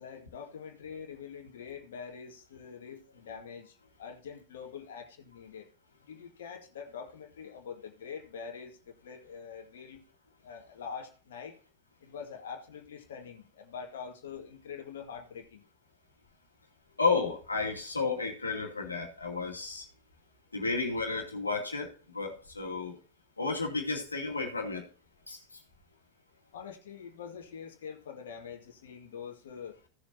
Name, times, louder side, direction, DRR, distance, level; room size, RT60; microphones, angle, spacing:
voice 1, 0.0-5.7 6.1-8.7 9.0-10.0 10.4-11.5 12.0-15.6 26.5-29.8, left 6 dB, 60° left, 2 dB, 2.0 m, -44 dB
voice 2, 17.0-19.8 20.5-23.0 23.4-24.8 25.3-25.4, left 4 dB, 80° left, 1 dB, 2.4 m, -32 dB
16.5 x 7.1 x 2.8 m, 0.40 s
figure-of-eight pair, 90°, 0 cm